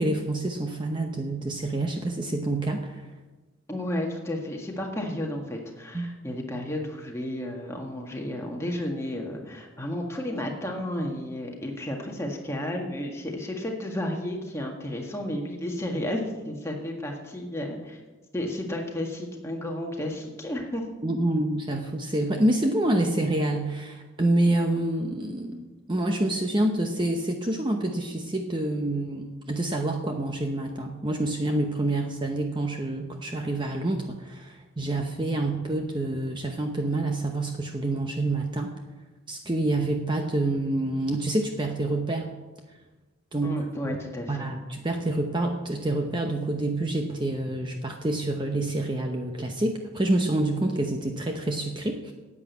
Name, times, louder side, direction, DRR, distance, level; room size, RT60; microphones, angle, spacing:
voice 1, 0.0-3.0 5.9-6.1 21.0-38.7 39.3-42.3 43.3-44.0 44.3-52.1, right 1 dB, 25° right, 3 dB, 0.8 m, -27 dB
voice 2, 3.7-18.0 18.3-20.8 43.4-44.5, left 1 dB, 15° left, 0 dB, 1.7 m, -32 dB
10.5 x 8.6 x 8.2 m, 1.2 s
head